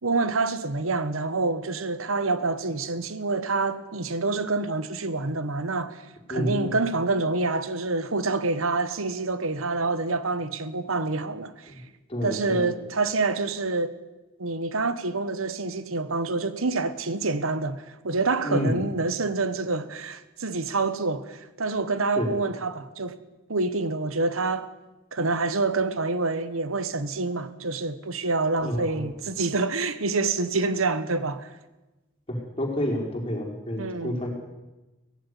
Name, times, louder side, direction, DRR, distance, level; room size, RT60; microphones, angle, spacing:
voice 1, 0.0-6.0 6.3-11.7 12.2-13.9 14.4-23.2 23.5-24.7 25.1-31.5 33.8-34.2, right 3 dB, 85° right, 1.3 m, -27 dB
voice 2, 6.3-6.7 11.7-11.8 12.1-12.7 18.4-18.7 22.1-22.3 28.6-29.1 32.3-34.3, equal, 25° left, 4.7 m, -29 dB
17.5 x 15.0 x 10.0 m
head